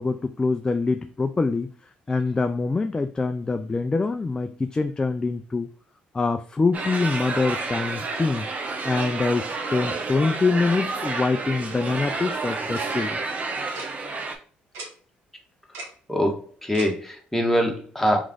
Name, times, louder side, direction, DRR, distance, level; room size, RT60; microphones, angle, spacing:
voice 1, 0.0-1.7 2.1-5.7 6.1-8.5 8.8-13.2, left 3 dB, 20° left, 8 dB, 0.4 m, -25 dB
sound 1, 6.7-14.4, right 3 dB, 40° right, 0.9 m, -30 dB
Tick-tock, 12.7-12.9 13.7-13.9 14.7-14.9 15.7-15.9 16.7-16.9, right 3 dB, 80° right, 1.3 m, -36 dB
voice 2, 16.1-18.2, equal, 5° left, 1 dB, 1.3 m, -23 dB
3.5 x 3.2 x 3.8 m, 0.40 s
supercardioid pair, 70°, 4 cm